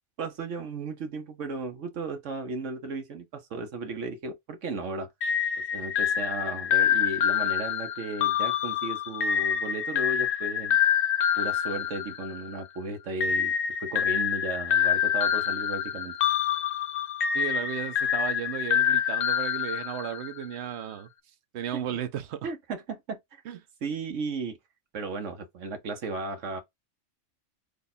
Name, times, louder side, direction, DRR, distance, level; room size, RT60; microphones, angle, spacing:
voice 1, 0.2-5.1 5.7-10.8 11.4-13.5 13.8-16.2 21.7-22.0 22.4-24.6 24.9-26.6, right 3 dB, 85° right, 1.3 m, -35 dB
sound 1, 5.2-12.6 13.2-20.4, left 9 dB, 70° left, 0.8 m, -26 dB
voice 2, 17.3-21.1 21.5-22.5 23.5-23.6, right 9 dB, 65° right, 0.9 m, -34 dB
3.4 x 2.3 x 4.1 m
omnidirectional pair, 1.2 m